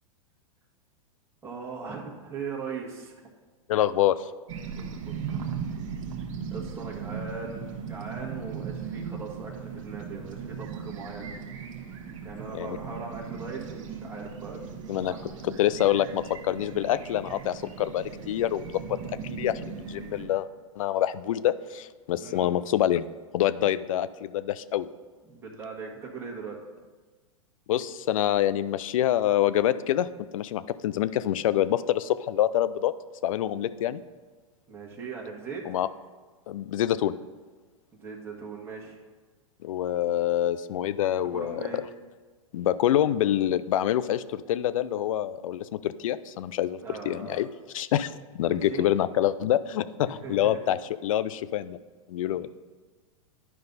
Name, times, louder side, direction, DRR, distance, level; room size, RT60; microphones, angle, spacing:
voice 1, 1.4-3.3 4.8-5.3 6.5-11.4 12.2-14.7 15.1-15.2 22.1-22.6 25.3-26.6 34.7-35.6 38.0-39.0 41.3-41.8 46.8-47.4 48.4-48.9 50.1-50.6 52.4-52.5, right 5 dB, 15° right, -4 dB, 1.5 m, -39 dB
voice 2, 3.7-4.3 12.5-12.8 14.9-15.1 15.4-19.0 19.2-20.5 20.8-23.1 23.3-24.9 27.7-30.1 30.3-32.9 33.2-34.0 35.7-35.9 36.5-37.1 39.6-41.8 42.5-46.8 47.0-47.5 47.7-51.8 52.1-52.5, left 12 dB, 75° left, 16 dB, 0.4 m, -26 dB
sound 1, 4.5-20.3, right 6 dB, 65° right, 1.1 m, -38 dB
10.0 x 5.3 x 4.0 m, 1.3 s
hypercardioid pair, 120°, 18 cm